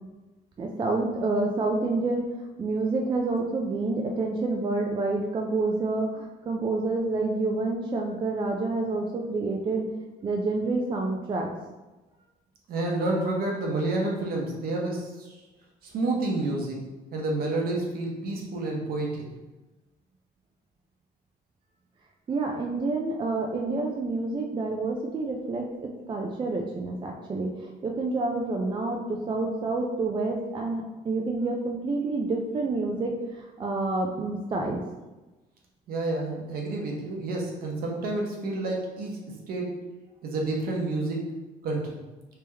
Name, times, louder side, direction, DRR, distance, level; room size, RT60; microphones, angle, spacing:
voice 1, 0.6-2.2 2.6-9.8 10.2-11.5 22.3-34.8, right 3 dB, 30° right, 0 dB, 0.4 m, -28 dB
voice 2, 12.7-15.3 15.8-16.8 17.1-19.3 35.9-39.2 39.5-39.8 40.2-41.3 41.6-42.0, right 2 dB, 60° right, 0 dB, 1.0 m, -29 dB
3.4 x 2.9 x 3.4 m, 1.1 s
cardioid pair, 110°, 17 cm